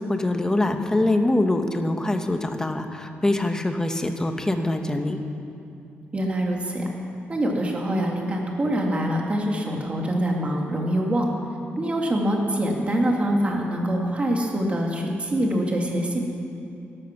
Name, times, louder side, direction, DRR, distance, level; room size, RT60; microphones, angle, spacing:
voice 1, 0.0-5.2, left 2 dB, 15° left, 5 dB, 1.2 m, -24 dB
voice 2, 6.1-6.9 7.3-11.3 11.8-16.2, right 1 dB, 30° right, 0 dB, 2.4 m, -24 dB
17.0 x 13.0 x 6.0 m, 2.6 s
cardioid pair, 120°, 4 cm